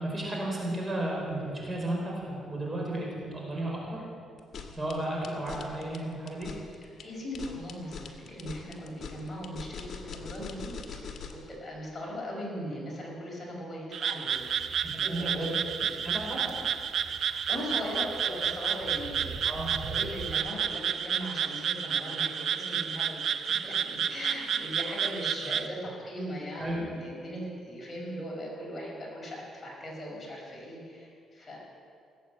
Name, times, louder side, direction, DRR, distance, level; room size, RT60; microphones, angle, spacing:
voice 1, 0.0-4.0 4.7-6.5 14.8-15.5 16.0-16.4 19.4-19.7 26.6-26.8, right 1 dB, 25° right, -3 dB, 4.5 m, -33 dB
sound 1, 4.4-11.5, left 5 dB, 55° left, 1.6 m, -42 dB
voice 2, 6.8-15.5 17.0-19.4 19.8-23.3 23.6-31.6, equal, 30° left, -3 dB, 5.0 m, -39 dB
Frog, 13.9-25.7, right 8 dB, 65° right, 0.6 m, -31 dB
sound 2, 14.3-20.4, right 5 dB, 85° right, 2.4 m, -45 dB
18.0 x 8.4 x 7.8 m, 2.3 s
cardioid pair, 90°, 0 cm